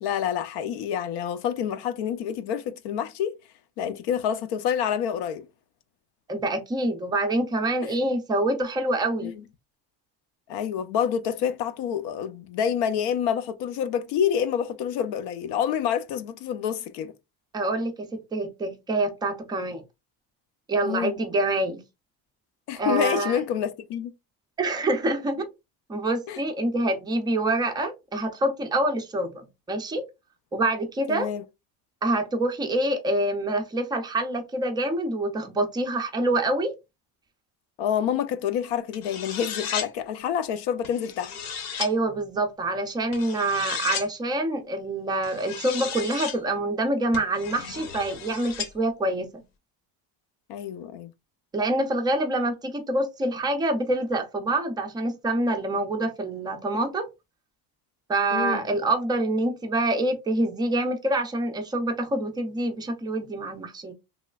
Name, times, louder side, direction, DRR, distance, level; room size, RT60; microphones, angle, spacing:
voice 1, 0.0-3.3 3.8-5.5 9.2-9.3 10.5-17.1 20.8-21.1 22.7-24.1 26.3-26.4 31.1-31.4 37.8-41.4 50.5-51.1 58.3-58.6, left 8 dB, 85° left, 0.6 m, -27 dB
voice 2, 6.3-9.3 17.5-19.8 20.7-21.8 22.8-23.4 24.6-25.5 25.9-30.1 30.5-31.3 32.0-36.7 41.8-49.4 51.5-57.1 58.1-63.9, right 1 dB, 10° right, 0.3 m, -26 dB
sound 1, 38.9-39.9 40.8-41.9 43.1-44.1 45.2-46.4 47.1-48.7, left 7 dB, 55° left, 0.7 m, -34 dB
3.0 x 3.0 x 2.3 m
cardioid pair, 170°, 41 cm